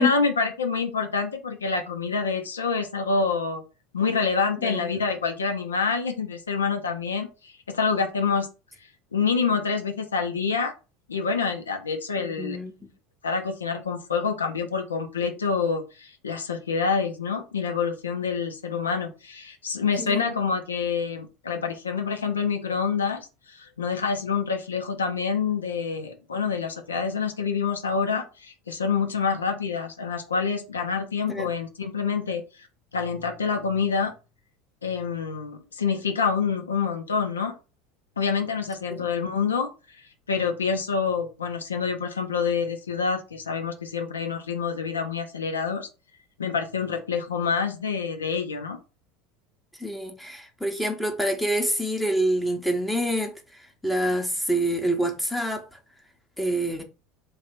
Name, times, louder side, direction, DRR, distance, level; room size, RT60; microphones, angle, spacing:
voice 1, 0.0-3.6 3.9-8.5 9.1-10.7 11.1-12.6 13.2-32.7 32.9-34.1 34.8-37.5 38.2-45.9 46.4-48.8, left 5 dB, 75° left, 0.5 m, -27 dB
voice 2, 12.2-12.7 20.0-20.2 31.3-31.5 38.9-39.1 49.8-55.8 56.4-56.8, equal, ahead, 0.7 m, -27 dB
3.4 x 2.4 x 4.3 m
figure-of-eight pair, 75°, 0 cm